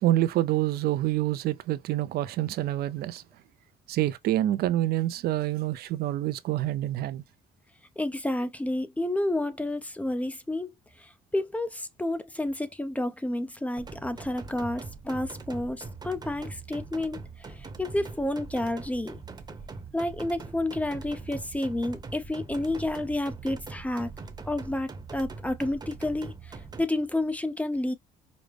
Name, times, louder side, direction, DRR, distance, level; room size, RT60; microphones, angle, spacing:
voice 1, 0.0-3.2 3.9-7.2, right 14 dB, 65° right, 0.5 m, -27 dB
voice 2, 8.0-17.5 17.8-19.2 19.9-24.1 24.5-27.9, left 1 dB, 10° left, 0.5 m, -30 dB
sound 1, 13.8-26.8, right 4 dB, 25° right, 0.9 m, -42 dB
5.1 x 2.0 x 3.3 m
cardioid pair, 110°, 17 cm